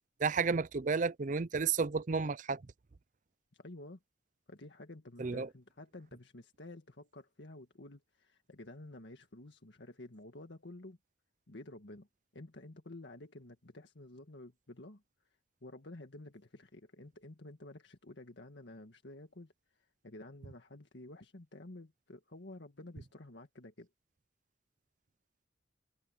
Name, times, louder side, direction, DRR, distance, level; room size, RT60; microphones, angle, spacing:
voice 1, 0.2-2.6 5.2-5.5, right 5 dB, 45° right, 0.5 m, -32 dB
voice 2, 3.5-4.0 4.5-11.0 11.5-12.1 12.3-15.0 15.6-23.9, left 2 dB, 80° left, 1.7 m, -51 dB
head